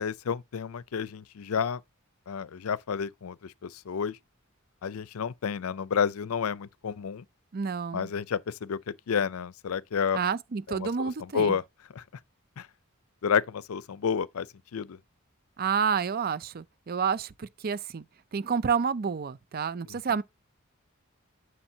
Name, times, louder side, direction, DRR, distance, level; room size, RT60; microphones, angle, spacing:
voice 1, 0.0-1.8 2.3-4.2 4.8-7.2 7.9-8.8 9.1-10.2 10.7-11.6 11.9-12.0 12.6-12.7 13.2-14.5 14.7-15.0 19.9-20.0, left 6 dB, 90° left, 0.5 m, -30 dB
voice 2, 7.5-8.1 10.1-11.6 15.6-18.0 18.3-20.2, right 6 dB, 45° right, 0.5 m, -29 dB
7.1 x 6.5 x 2.7 m
head